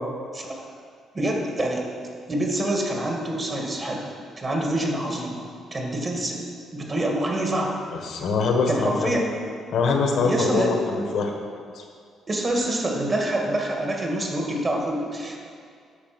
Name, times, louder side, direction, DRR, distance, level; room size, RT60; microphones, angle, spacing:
voice 1, 0.3-0.7 1.1-1.9 2.3-4.1 4.4-6.5 6.7-7.7 8.7-9.3 10.2-11.0 12.3-15.4, right 1 dB, 35° right, 0 dB, 2.1 m, -26 dB
voice 2, 7.9-9.2 9.7-11.3 11.7-11.8, left 4 dB, 70° left, 3 dB, 1.5 m, -23 dB
10.0 x 6.3 x 6.1 m, 2.2 s
cardioid pair, 90°, 0 cm